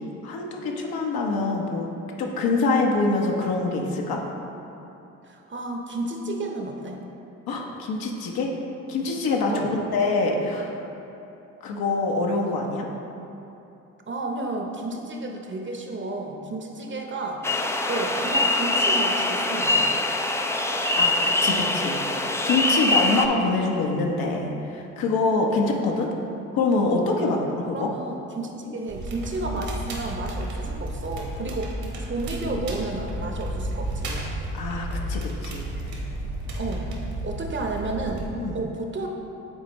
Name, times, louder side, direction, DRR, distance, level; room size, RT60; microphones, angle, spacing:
voice 1, 0.0-1.9 2.2-4.2 7.5-8.5 8.9-10.7 11.6-12.9 21.0-26.1 26.5-27.9 34.5-35.9 38.4-38.6, left 3 dB, 60° left, 0 dB, 1.0 m, -25 dB
voice 2, 5.2-7.0 9.5-9.7 14.1-17.4 17.9-19.9 27.3-34.2 36.6-36.9 37.2-38.3 38.5-39.1, right 2 dB, 30° right, 2 dB, 0.9 m, -32 dB
sound 1, 17.4-23.3, left 2 dB, 5° left, 0.4 m, -23 dB
Crackle, 28.9-38.3, right 1 dB, 60° right, 1.4 m, -32 dB
9.0 x 4.2 x 3.0 m, 2.9 s
hypercardioid pair, 50°, 41 cm